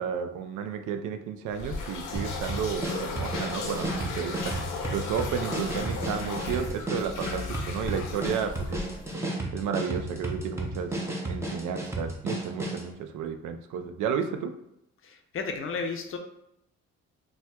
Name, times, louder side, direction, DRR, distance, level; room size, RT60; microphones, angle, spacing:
voice 1, 0.0-8.8 9.5-11.0 11.3-14.5, right 7 dB, 80° right, 7 dB, 0.5 m, -32 dB
sound 1, 1.5-9.1, left 4 dB, 80° left, 0.7 m, -36 dB
sound 2, 2.2-12.9, right 2 dB, 10° right, 0.6 m, -33 dB
voice 2, 15.0-16.2, left 4 dB, 45° left, 5 dB, 0.5 m, -33 dB
4.2 x 2.3 x 2.2 m, 0.79 s
cardioid pair, 90°, 30 cm